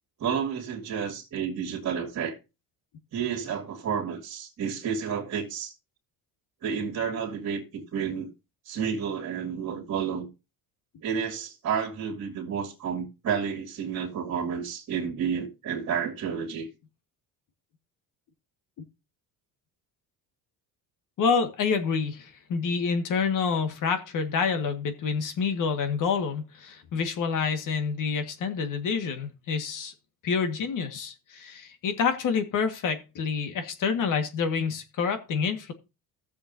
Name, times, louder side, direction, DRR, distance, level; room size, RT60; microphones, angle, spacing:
voice 1, 0.2-2.4 3.1-5.7 6.6-8.3 8.6-10.3 11.0-16.7, right 7 dB, 45° right, 2.5 m, -30 dB
voice 2, 21.2-29.9 30.2-35.7, left 5 dB, 55° left, 1.7 m, -28 dB
16.0 x 7.0 x 2.7 m
cardioid pair, 120°, 38 cm